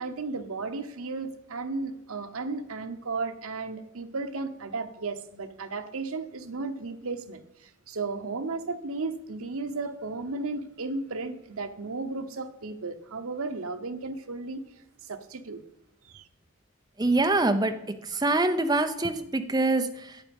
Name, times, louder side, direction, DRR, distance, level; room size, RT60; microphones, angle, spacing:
voice 1, 0.0-14.6 15.0-15.6 16.0-16.3, right 3 dB, 85° right, 0.9 m, -34 dB
voice 2, 17.0-20.2, right 2 dB, 20° right, 0.6 m, -25 dB
11.0 x 8.4 x 5.3 m
head